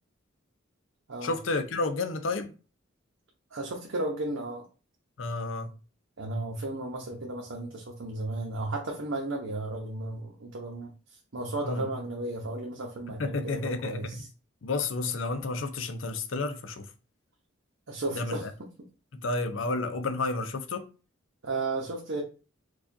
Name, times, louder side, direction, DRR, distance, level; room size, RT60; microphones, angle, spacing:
voice 1, 1.2-2.5 5.2-5.8 11.6-12.1 13.2-14.2 14.6-16.9 18.1-18.5 19.2-20.9, left 3 dB, 80° left, 0.6 m, -31 dB
voice 2, 3.5-4.7 6.2-10.9 11.3-14.3 17.9-18.4 21.4-22.2, right 2 dB, 85° right, 0.8 m, -34 dB
4.6 x 2.4 x 2.6 m
head